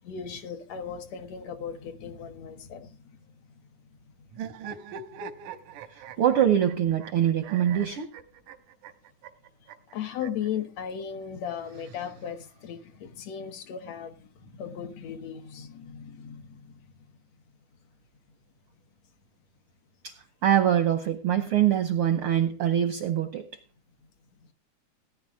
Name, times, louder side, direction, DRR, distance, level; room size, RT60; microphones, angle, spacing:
voice 1, 0.0-2.9 9.9-14.2 14.5-16.6, left 8 dB, 65° left, 2.0 m, -36 dB
sound 1, 4.3-10.5 11.5-12.6, right 7 dB, 90° right, 2.5 m, -43 dB
voice 2, 5.9-8.1 20.0-20.1 20.4-23.5, right 10 dB, 75° right, 1.3 m, -24 dB
17.5 x 10.5 x 3.5 m
omnidirectional pair, 3.5 m